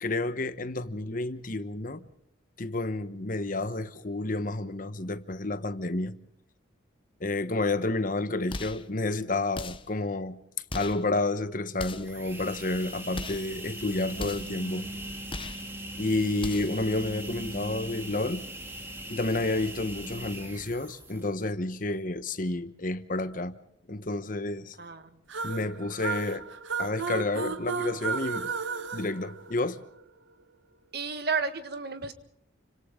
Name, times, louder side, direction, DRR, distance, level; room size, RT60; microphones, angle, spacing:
voice 1, 0.0-2.1 2.6-6.2 7.2-10.4 10.7-14.9 15.9-18.5 19.1-23.6 23.9-24.8 25.4-26.5 26.8-28.5 28.9-29.8, left 2 dB, 45° left, 1.1 m, -30 dB
sound 1, 8.5-8.9 9.5-10.0 10.7-11.1 11.7-12.2 13.1-13.5 14.2-14.6 15.3-15.7 16.4-16.8, left 3 dB, 25° left, 0.9 m, -38 dB
sound 2, 12.0-21.4, right 1 dB, 15° right, 2.9 m, -40 dB
voice 2, 24.8-25.2 30.9-32.1, right 5 dB, 55° right, 1.8 m, -32 dB
sound 3, 25.3-30.0, right 5 dB, 85° right, 1.1 m, -34 dB
30.0 x 25.5 x 3.8 m
head